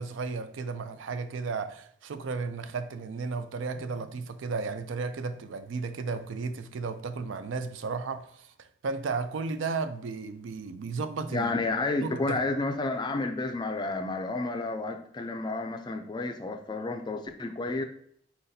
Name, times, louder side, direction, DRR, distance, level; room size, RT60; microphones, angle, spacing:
voice 1, 0.0-11.5 12.0-12.4, right 4 dB, 85° right, 0.4 m, -34 dB
voice 2, 11.3-17.8, left 3 dB, 25° left, 0.3 m, -31 dB
4.3 x 4.0 x 2.7 m
head